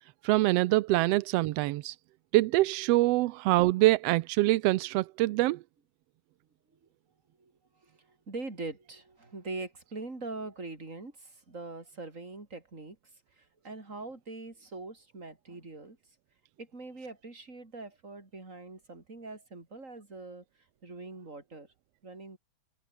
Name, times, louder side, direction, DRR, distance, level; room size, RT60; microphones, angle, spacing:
voice 1, 0.2-2.0 2.3-5.6, right 18 dB, 85° right, 1.4 m, -25 dB
voice 2, 7.8-13.0 13.4-16.0 16.6-20.4 20.8-21.7 22.0-22.4, right 3 dB, 25° right, 4.7 m, -42 dB
omnidirectional pair, 3.4 m